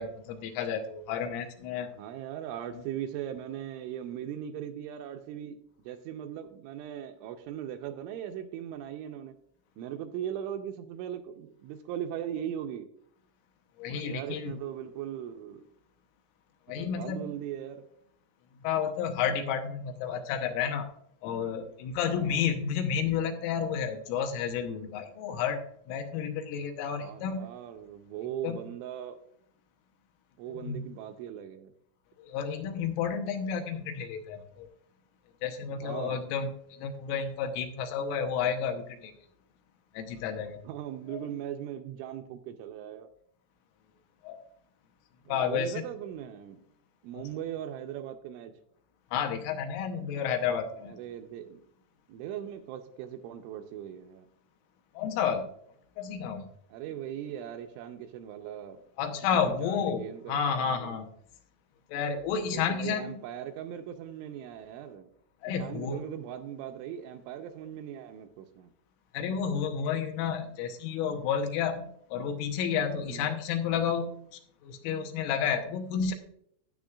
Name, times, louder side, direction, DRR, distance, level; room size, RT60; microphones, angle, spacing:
voice 1, 0.0-1.9 2.8-2.9 13.8-14.6 16.7-17.3 18.6-20.9 21.2-27.5 28.4-28.6 30.6-30.9 32.3-34.7 35.4-39.1 40.0-40.6 41.1-41.2 44.2-44.4 45.3-45.9 47.2-47.3 49.1-51.0 55.0-55.5 56.0-56.5 59.0-61.1 61.9-63.2 65.4-66.1 69.1-74.1 74.6-76.1, left 7 dB, 85° left, 6 dB, 3.5 m, -31 dB
voice 2, 1.9-5.6 5.9-9.4 9.8-12.9 13.9-15.6 16.7-17.8 22.0-22.5 26.9-29.2 30.4-31.7 35.7-36.2 40.6-43.1 45.3-46.6 47.0-48.5 50.9-51.6 52.1-54.3 56.7-58.8 59.3-61.0 62.4-65.1 65.5-68.7 73.1-73.4, right 10 dB, 85° right, 6 dB, 2.9 m, -39 dB
12.5 x 9.1 x 2.4 m, 0.69 s
omnidirectional pair, 5.7 m